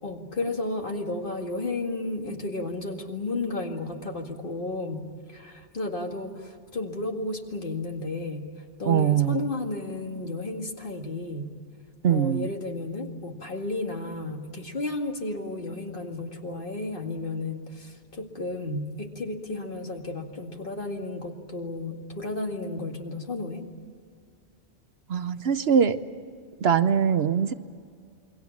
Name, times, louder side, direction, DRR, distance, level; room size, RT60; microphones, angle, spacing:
voice 1, 0.0-8.5 8.8-11.5 12.1-23.6, left 2 dB, 50° left, 3 dB, 2.3 m, -33 dB
voice 2, 8.9-9.5 12.0-12.5 25.1-26.0 26.6-27.5, right 8 dB, 65° right, 11 dB, 1.0 m, -22 dB
28.5 x 22.5 x 7.3 m, 2.1 s
omnidirectional pair, 1.2 m